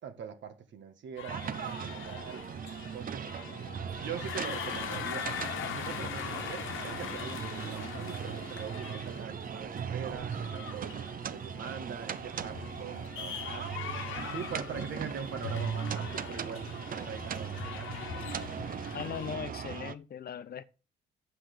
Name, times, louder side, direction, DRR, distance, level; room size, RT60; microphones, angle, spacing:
voice 1, 0.0-2.4 2.9-3.4 4.0-5.3 5.6-10.9 11.3-13.9 14.3-16.6 16.9-18.2, right 7 dB, 65° right, 1.7 m, -42 dB
sound 1, 1.2-19.3, left 10 dB, 80° left, 1.1 m, -42 dB
sound 2, 1.3-20.0, right 8 dB, 45° right, 0.6 m, -39 dB
voice 2, 18.9-20.6, left 8 dB, 50° left, 0.8 m, -39 dB
7.7 x 5.9 x 6.8 m
cardioid pair, 90°, 20 cm